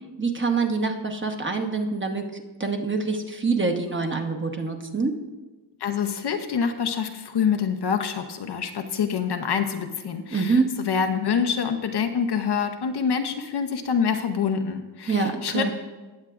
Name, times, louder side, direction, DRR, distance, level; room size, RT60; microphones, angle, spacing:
voice 1, 0.2-5.1 10.3-10.7 15.1-15.7, right 4 dB, 25° right, 3 dB, 1.1 m, -25 dB
voice 2, 5.8-15.7, left 6 dB, 55° left, 6 dB, 0.8 m, -26 dB
18.0 x 7.3 x 2.5 m, 1.2 s
cardioid pair, 90°, 48 cm